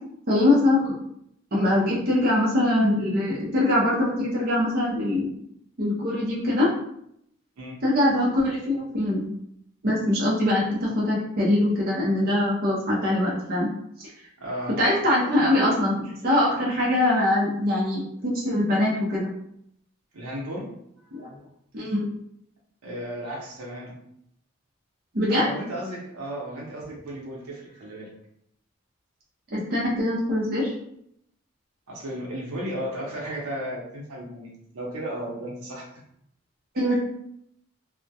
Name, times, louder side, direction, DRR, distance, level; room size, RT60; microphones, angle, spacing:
voice 1, 0.3-0.9 1.5-5.3 5.8-6.7 7.8-9.3 9.8-13.7 14.0-14.1 14.8-19.3 21.1-21.3 21.7-22.1 25.1-25.5 29.5-30.7 36.7-36.9, left 1 dB, 45° right, -5 dB, 0.5 m, -23 dB
voice 2, 14.4-14.8 20.1-20.7 21.0-21.3 22.8-24.0 25.3-28.1 31.9-35.9, equal, 90° right, -2 dB, 0.7 m, -34 dB
2.2 x 2.1 x 2.7 m, 0.73 s
head